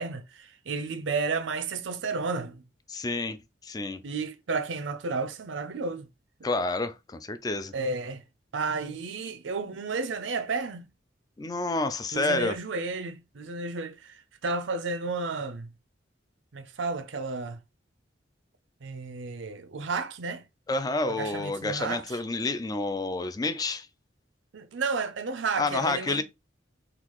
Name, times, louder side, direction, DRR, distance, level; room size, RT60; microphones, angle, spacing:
voice 1, 0.0-2.6 4.0-6.1 7.7-8.2 8.5-10.9 12.1-15.7 16.5-17.6 18.8-20.4 21.1-22.2 24.5-26.2, right 4 dB, 80° right, 0.5 m, -32 dB
voice 2, 2.9-3.4 3.6-4.0 6.4-7.7 11.4-12.6 20.7-23.9 25.6-26.2, left 3 dB, 20° left, 0.3 m, -29 dB
3.9 x 2.3 x 3.0 m
head